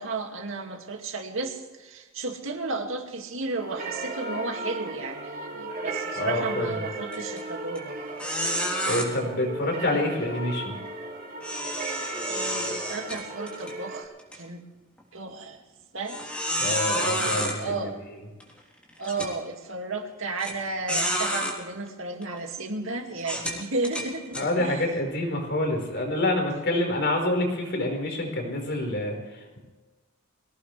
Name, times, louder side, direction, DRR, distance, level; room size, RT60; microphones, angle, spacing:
voice 1, 0.0-8.0 11.8-11.9 12.3-14.6 15.1-15.6 15.9-16.2 16.9-18.0 19.0-24.8, right 3 dB, 65° right, 3 dB, 2.4 m, -33 dB
sound 1, 3.6-14.0, right 2 dB, 45° right, 3.1 m, -36 dB
voice 2, 6.1-6.8 8.9-10.8 16.6-17.9 24.3-29.6, left 1 dB, 55° left, 2 dB, 4.9 m, -27 dB
sound 2, 7.1-7.4 7.7-7.8 8.2-9.0 11.4-13.7 14.2-14.4 15.0-15.1 16.1-17.5 18.4-18.5 19.0-19.3 20.4-20.5 20.9-21.5 22.2-22.4 23.2-24.5, equal, 5° left, 3.3 m, -29 dB
24.0 x 17.5 x 3.4 m, 1.2 s
head